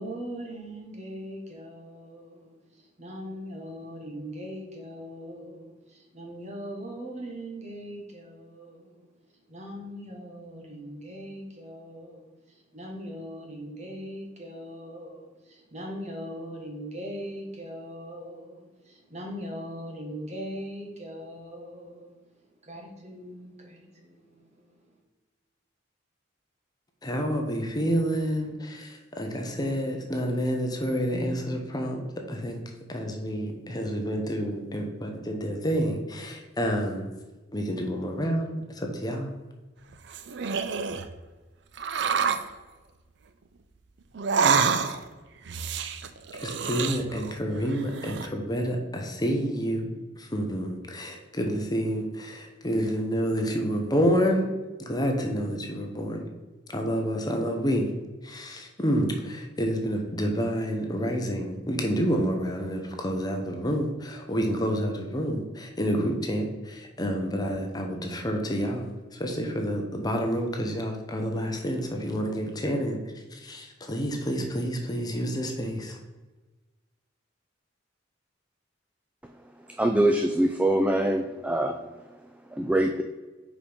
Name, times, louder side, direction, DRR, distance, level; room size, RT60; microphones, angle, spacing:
voice 1, 0.0-9.1 9.4-25.0, equal, 35° right, 1.5 m, -40 dB
voice 2, 27.0-32.0 32.3-32.6 32.9-37.1 37.5-39.3 46.4-54.5 54.9-56.2 56.7-57.9 58.2-73.0 73.3-76.0, equal, 20° left, 0.9 m, -29 dB
sound 1, 39.9-41.1 41.8-42.5 44.1-45.1 45.4-47.4 47.7-48.3, right 6 dB, 65° right, 0.5 m, -27 dB
voice 3, 79.8-81.8 82.5-83.0, right 1 dB, 5° right, 0.3 m, -23 dB
5.0 x 5.0 x 5.3 m
head